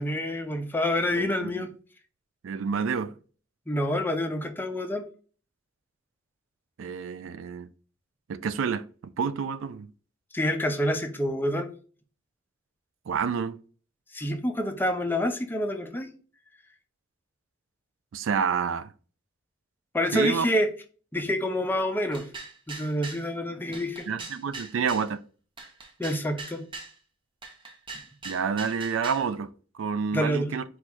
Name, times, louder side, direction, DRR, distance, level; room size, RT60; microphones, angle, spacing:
voice 1, 0.0-1.7 3.7-5.0 10.3-11.7 14.1-16.1 19.9-20.7 21.1-22.3 22.7-24.1 26.0-26.6 30.1-30.6, left 1 dB, 10° left, 0.5 m, -27 dB
voice 2, 1.2-1.7 2.4-3.1 6.8-7.7 8.3-8.9 9.2-9.9 13.1-13.6 18.1-18.9 20.1-20.5 24.1-25.2 28.2-29.5 29.8-30.6, right 6 dB, 75° right, 0.3 m, -29 dB
sound 1, 22.1-23.3 23.7-25.1 25.6-26.9 27.4-29.3, right 3 dB, 25° right, 0.7 m, -41 dB
4.6 x 2.3 x 4.2 m
head